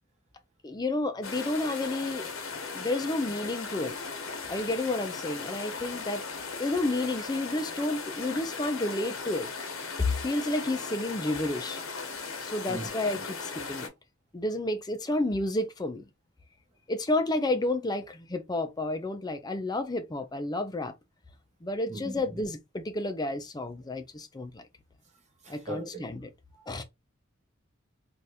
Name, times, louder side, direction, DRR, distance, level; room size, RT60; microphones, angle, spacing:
voice 1, 0.6-2.3 2.7-4.0 4.5-6.2 6.6-9.5 10.0-11.8 12.4-13.9 14.3-16.0 16.9-20.9 21.6-24.6 25.5-26.3 26.7-26.8, left 2 dB, 20° left, 0.5 m, -31 dB
sound 1, 1.2-13.9, left 4 dB, 90° left, 0.9 m, -38 dB
voice 2, 25.4-26.0, right 1 dB, 35° right, 1.0 m, -38 dB
3.4 x 2.5 x 2.8 m
head